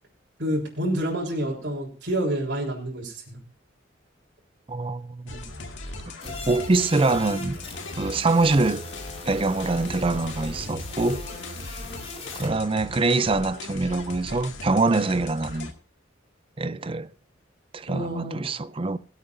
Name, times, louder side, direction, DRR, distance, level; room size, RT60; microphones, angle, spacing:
voice 1, 0.4-3.4 17.9-18.5, right 1 dB, 65° right, 3.8 m, -28 dB
voice 2, 4.7-5.4 6.2-7.6 8.0-8.8 9.3-11.2 12.4-15.7 16.6-17.1 17.7-19.0, right 3 dB, 30° right, 0.5 m, -24 dB
sound 1, 5.3-15.7, left 2 dB, 70° left, 2.1 m, -38 dB
sound 2, 6.2-12.5, left 2 dB, 30° left, 2.6 m, -40 dB
23.0 x 8.3 x 2.6 m
head